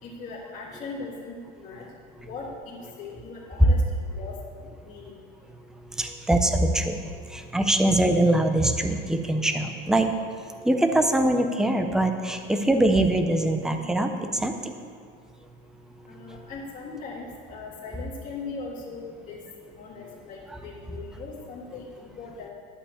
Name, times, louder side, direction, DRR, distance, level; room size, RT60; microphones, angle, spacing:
voice 1, 0.0-1.9 2.2-3.8 4.1-5.2 16.0-19.4 19.7-22.5, left 4 dB, 25° left, -8 dB, 1.9 m, -39 dB
voice 2, 5.9-7.0 7.3-10.1 10.6-14.7 16.3-16.4, right 1 dB, ahead, 6 dB, 0.3 m, -23 dB
11.0 x 5.5 x 8.2 m, 2.2 s
cardioid pair, 170°, 30 cm